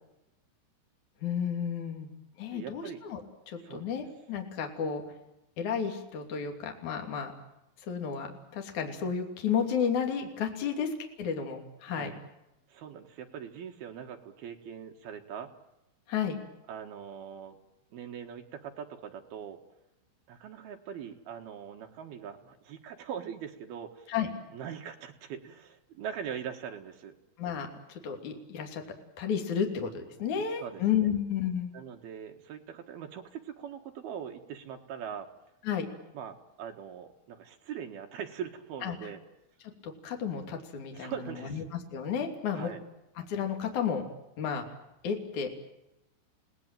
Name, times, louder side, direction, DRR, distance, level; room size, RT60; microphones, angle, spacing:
voice 1, 1.2-2.1 2.4-3.2 3.5-5.0 5.6-7.3 7.8-12.1 16.1-16.4 24.1-24.3 27.4-28.8 29.2-31.7 35.6-35.9 38.8-39.0 39.8-41.6 41.9-42.7 43.2-44.0 44.4-44.7 45.0-45.5, left 7 dB, 45° left, 3 dB, 3.7 m, -32 dB
voice 2, 2.5-3.0 3.6-3.9 11.9-12.2 12.7-15.5 16.7-17.6 17.9-19.6 20.3-24.1 24.5-27.1 30.3-31.1 31.7-35.3 36.1-39.2 40.9-41.6 42.5-42.8, right 8 dB, 60° right, 4 dB, 3.0 m, -42 dB
29.5 x 19.0 x 9.1 m, 0.89 s
omnidirectional pair, 5.7 m